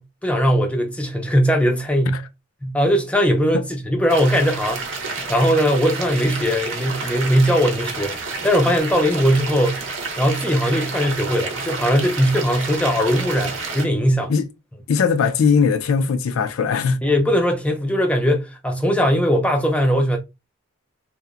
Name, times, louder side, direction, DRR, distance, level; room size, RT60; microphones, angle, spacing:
voice 1, 0.2-2.2 2.6-4.8 5.3-9.8 10.2-14.3 17.0-20.2, equal, 5° left, 0.4 m, -19 dB
sound 1, 4.1-13.8, right 4 dB, 65° right, 0.6 m, -30 dB
voice 2, 14.9-17.0, left 5 dB, 85° left, 0.4 m, -19 dB
2.8 x 2.0 x 2.3 m
head